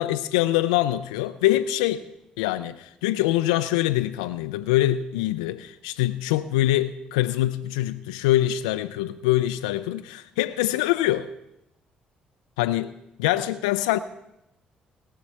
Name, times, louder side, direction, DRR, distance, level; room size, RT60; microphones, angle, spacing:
voice 1, 0.0-2.1 2.4-11.3 12.6-12.9 13.2-14.0, left 14 dB, 85° left, 0.4 m, -24 dB
17.5 x 6.6 x 7.2 m
hypercardioid pair, 50°, 4 cm